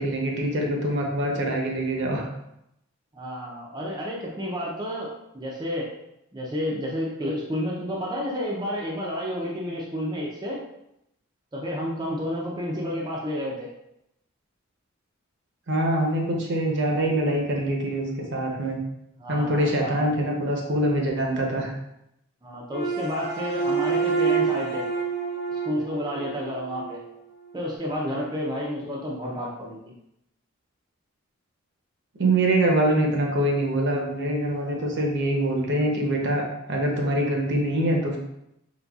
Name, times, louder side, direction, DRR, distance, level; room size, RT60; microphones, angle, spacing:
voice 1, 0.0-2.3 15.7-18.8 19.3-21.7 32.2-38.2, right 1 dB, 55° right, 0 dB, 0.8 m, -24 dB
voice 2, 3.1-5.9 6.3-10.6 11.5-13.7 19.2-20.0 22.4-24.9 25.5-27.0 27.5-29.8, equal, 20° right, -3 dB, 0.5 m, -30 dB
sound 1, 22.7-27.0, right 5 dB, 50° left, 1.1 m, -27 dB
4.0 x 3.7 x 2.3 m, 0.81 s
head